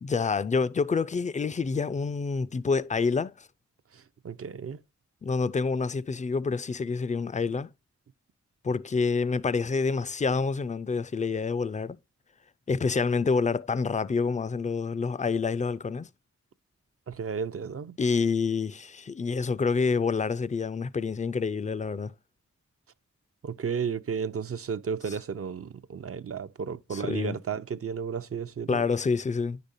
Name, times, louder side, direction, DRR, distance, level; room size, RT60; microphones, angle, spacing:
voice 1, 0.0-3.5 5.2-7.7 8.6-12.0 12.7-16.1 18.0-22.1 25.1-25.2 26.9-27.4 28.7-29.6, left 4 dB, 25° left, 0.4 m, -27 dB
voice 2, 3.9-4.8 17.1-18.0 23.4-28.8, right 6 dB, 50° right, 0.5 m, -33 dB
9.7 x 5.1 x 2.6 m
cardioid pair, 50°, 30 cm